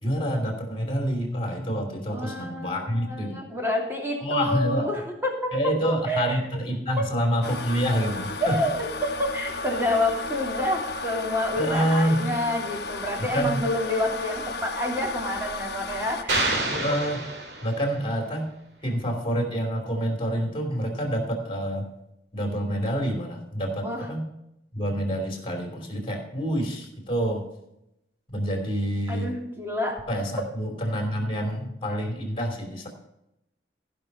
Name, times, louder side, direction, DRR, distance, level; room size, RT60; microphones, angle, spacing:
voice 1, 0.0-3.4 4.2-4.9 5.5-8.6 11.6-12.2 13.2-13.6 16.7-17.2 17.6-18.5 18.8-21.9 22.3-24.2 24.7-27.4 28.3-29.3 30.1-32.9, equal, 30° left, 3 dB, 2.9 m, -27 dB
voice 2, 2.1-5.5 5.8-6.4 7.0-7.1 8.4-16.4 23.8-24.1 29.1-30.0, left 1 dB, 15° right, -1 dB, 2.8 m, -28 dB
sound 1, 7.4-16.2, left 3 dB, 65° left, 1.0 m, -34 dB
sound 2, 16.3-18.0, right 2 dB, 75° right, 2.4 m, -28 dB
15.5 x 5.8 x 5.4 m, 0.84 s
head